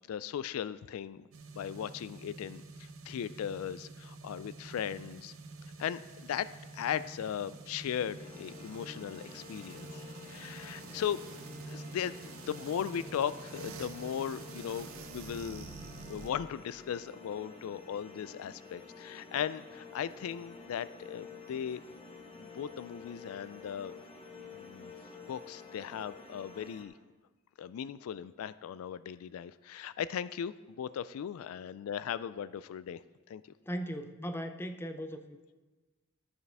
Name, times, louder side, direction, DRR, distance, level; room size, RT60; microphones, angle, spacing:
voice 1, 0.1-1.3 1.6-5.3 5.8-11.2 11.7-15.7 16.1-21.8 22.4-23.9 24.5-24.9 25.3-26.9 27.6-33.0 33.3-33.4, left 8 dB, 90° left, 0.3 m, -38 dB
sound 1, 1.3-16.3, right 3 dB, 75° right, 0.7 m, -48 dB
sound 2, 8.1-26.8, left 4 dB, 25° left, 1.0 m, -50 dB
voice 2, 33.7-35.4, equal, 10° left, 0.5 m, -38 dB
13.0 x 6.7 x 3.4 m
head